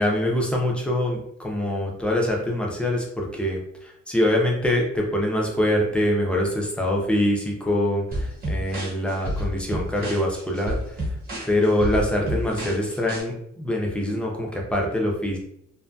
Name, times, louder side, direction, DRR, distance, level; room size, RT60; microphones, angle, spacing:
voice 1, 0.0-10.8 11.5-15.4, left 1 dB, 5° left, -1 dB, 0.4 m, -24 dB
sound 1, 8.1-13.2, equal, 30° right, 1.1 m, -30 dB
2.6 x 2.6 x 2.2 m, 0.74 s
wide cardioid pair, 160°, 29 cm